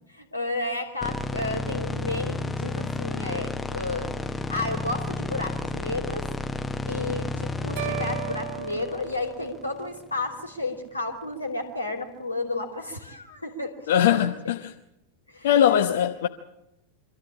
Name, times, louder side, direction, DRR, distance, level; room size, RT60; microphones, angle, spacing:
voice 1, 0.1-4.1 4.5-6.3 6.9-14.3 15.3-15.5 15.9-16.0, left 2 dB, 85° left, 2.9 m, -32 dB
sound 1, 1.0-10.2, left 3 dB, 10° left, 0.9 m, -32 dB
sound 2, 7.8-10.0, right 16 dB, 50° right, 1.3 m, -36 dB
voice 2, 13.9-14.6 15.4-16.3, left 10 dB, 55° left, 0.9 m, -20 dB
25.0 x 13.5 x 8.7 m
figure-of-eight pair, 90°, 0 cm